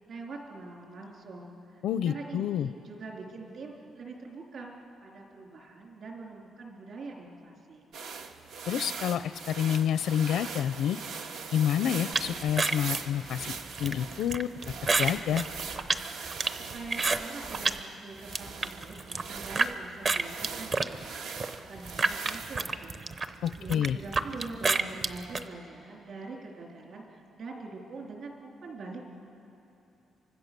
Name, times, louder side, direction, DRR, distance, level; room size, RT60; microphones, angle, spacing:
voice 1, 0.1-4.7 5.0-7.9 16.5-21.2 21.7-23.1 23.6-29.1, right 3 dB, 45° right, -1 dB, 3.5 m, -44 dB
voice 2, 1.8-2.7 8.7-11.0 11.5-14.5 15.0-15.4 23.4-24.0, left 9 dB, 75° left, 12 dB, 0.5 m, -28 dB
sound 1, 7.9-22.7, right 5 dB, 80° right, 1.6 m, -41 dB
sound 2, 12.1-17.8 18.2-19.7 20.0-25.4, right 3 dB, 30° right, 0.7 m, -30 dB
30.0 x 25.0 x 6.8 m, 2.8 s
cardioid pair, 180°, 0 cm